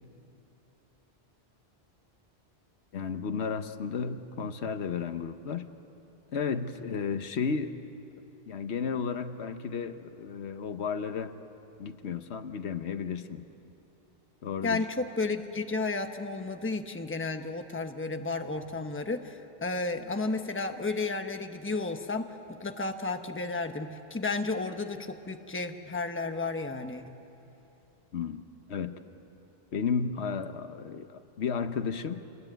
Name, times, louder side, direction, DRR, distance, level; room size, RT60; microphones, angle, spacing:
voice 1, 2.9-5.7 6.3-7.8 8.5-11.3 11.8-13.4 14.4-14.9 28.1-28.4 28.7-29.0 29.7-32.2, left 6 dB, 75° left, 10 dB, 1.2 m, -33 dB
voice 2, 14.6-27.0, left 3 dB, 10° left, 6 dB, 1.0 m, -32 dB
27.0 x 21.0 x 9.1 m, 2.9 s
omnidirectional pair, 1.1 m